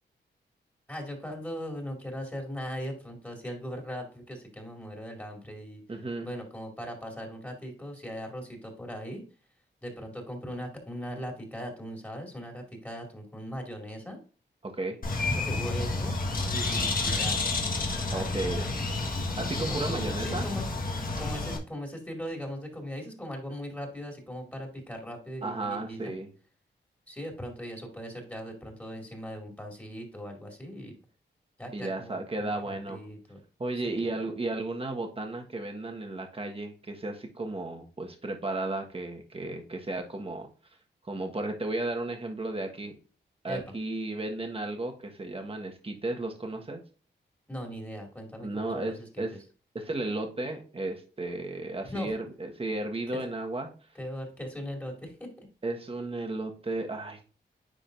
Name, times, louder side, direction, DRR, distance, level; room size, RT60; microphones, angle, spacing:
voice 1, 0.9-5.8 6.2-9.2 9.8-14.2 15.2-16.2 16.5-17.4 18.0-18.9 19.7-20.7 21.2-26.1 27.1-30.9 31.6-33.4 33.8-34.1 43.5-43.7 47.5-49.2 51.9-52.1 53.1-53.2 53.9-55.3, equal, 10° left, 1 dB, 2.4 m, -39 dB
voice 2, 5.9-6.3 14.6-15.0 18.1-18.7 19.4-20.5 25.4-26.3 31.7-33.0 33.6-40.5 41.0-42.9 43.4-46.8 48.4-49.3 49.7-53.7 55.6-57.2, right 2 dB, 30° right, 3 dB, 1.4 m, -34 dB
Bird, 15.0-21.6, left 3 dB, 50° left, 1.6 m, -30 dB
10.0 x 3.8 x 2.6 m, 0.37 s
cardioid pair, 70°, 19 cm